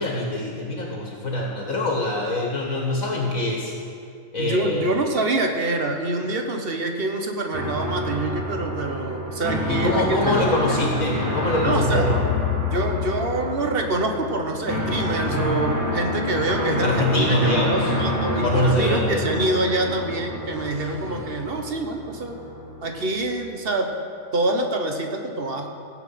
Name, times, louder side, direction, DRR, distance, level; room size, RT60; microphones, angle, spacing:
voice 1, 0.0-3.7 4.3-5.0 9.7-12.3 16.8-17.9 18.4-19.2 21.1-21.2, left 1 dB, 55° left, -2 dB, 2.0 m, -24 dB
voice 2, 4.4-10.8 11.6-12.1 12.7-22.3 22.8-23.9 24.3-25.7, right 2 dB, 40° right, 3 dB, 1.2 m, -26 dB
sound 1, 7.5-23.5, left 2 dB, 10° right, 1.8 m, -28 dB
sound 2, 16.6-21.8, right 5 dB, 65° right, 0.4 m, -34 dB
16.0 x 8.7 x 5.8 m, 2.4 s
omnidirectional pair, 1.7 m